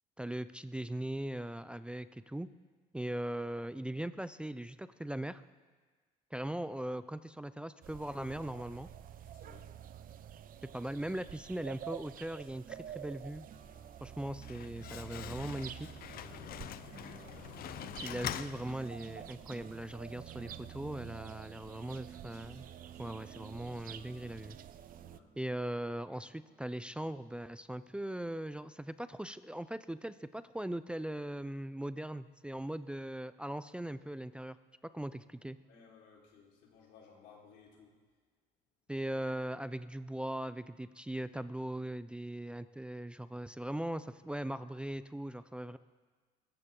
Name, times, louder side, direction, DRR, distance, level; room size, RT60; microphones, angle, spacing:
voice 1, 0.2-2.5 2.9-5.4 6.3-8.9 10.7-13.4 14.0-15.9 18.0-22.7 23.0-24.6 25.4-34.6 34.9-35.6 38.9-45.8, right 1 dB, 5° right, 12 dB, 0.4 m, -40 dB
sound 1, 7.8-25.2, right 10 dB, 55° right, 0.7 m, -49 dB
voice 2, 9.3-9.7 16.7-17.4 25.0-25.3 35.6-38.0, left 6 dB, 90° left, -3 dB, 4.4 m, -59 dB
sound 2, 12.6-27.8 28.2-28.4 28.7-28.9, right 4 dB, 40° right, 1.9 m, -59 dB
Slam, 14.2-19.3, left 11 dB, 60° left, 0.6 m, -44 dB
22.5 x 14.5 x 3.8 m, 1.4 s
cardioid pair, 110°, 17 cm